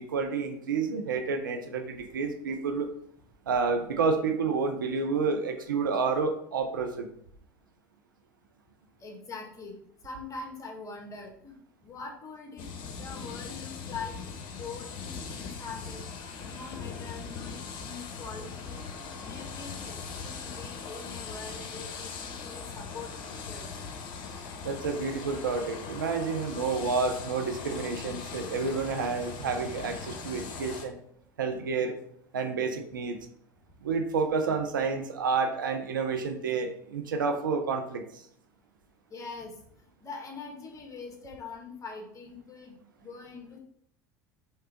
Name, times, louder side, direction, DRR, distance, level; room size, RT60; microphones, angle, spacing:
voice 1, 0.0-2.9 3.5-7.1 24.6-31.0 31.4-32.0 32.3-33.2 33.8-38.2, right 4 dB, 85° right, 6 dB, 0.6 m, -29 dB
voice 2, 9.0-9.8 10.0-16.0 16.5-23.8 39.1-39.5 40.0-43.6, left 4 dB, 30° left, 1 dB, 1.4 m, -43 dB
sound 1, 12.6-30.9, left 5 dB, 55° left, 0.9 m, -40 dB
3.7 x 3.3 x 4.3 m, 0.69 s
hypercardioid pair, 75°, 11 cm